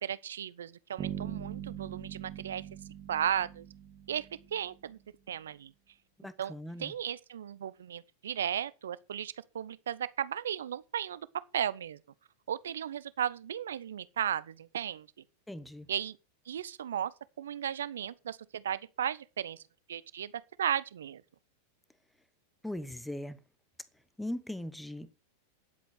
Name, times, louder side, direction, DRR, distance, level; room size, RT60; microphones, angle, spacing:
voice 1, 0.0-2.6 3.1-3.7 4.1-5.0 5.3-5.7 6.4-6.5 6.8-11.3 11.5-12.0 12.5-15.1 15.9-16.2 16.5-19.6 19.9-20.3 20.6-21.2, right 9 dB, 65° right, 0.8 m, -35 dB
Bass guitar, 1.0-4.8, right 10 dB, 30° right, 2.2 m, -41 dB
voice 2, 6.2-6.9 15.5-15.9 22.6-23.4 24.2-25.2, left 1 dB, 5° left, 1.0 m, -39 dB
10.5 x 7.8 x 6.5 m
figure-of-eight pair, 90°, 0 cm